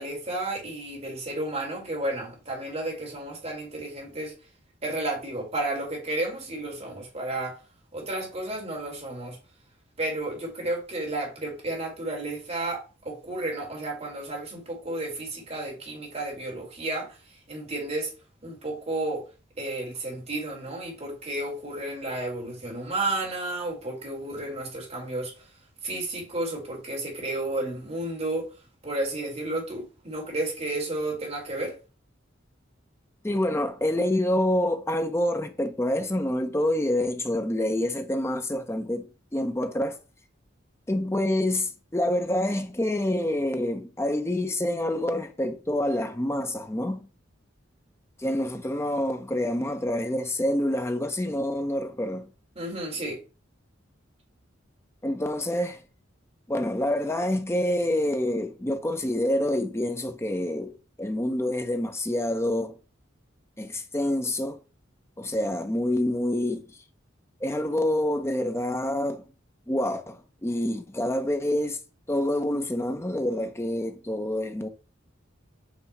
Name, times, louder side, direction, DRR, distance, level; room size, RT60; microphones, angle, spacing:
voice 1, 0.0-4.3 4.8-7.6 7.9-9.4 10.0-17.1 17.5-18.1 18.4-19.2 19.6-25.3 25.8-28.5 28.8-31.7 52.6-53.2, right 2 dB, 35° right, 2.2 m, -32 dB
voice 2, 33.2-40.0 40.9-47.1 48.2-52.3 55.0-55.8 56.5-60.7 61.0-62.8 63.6-64.6 65.2-66.6 67.4-69.2 69.7-71.8 72.1-74.7, left 1 dB, 15° left, 0.7 m, -27 dB
7.9 x 2.9 x 4.2 m
head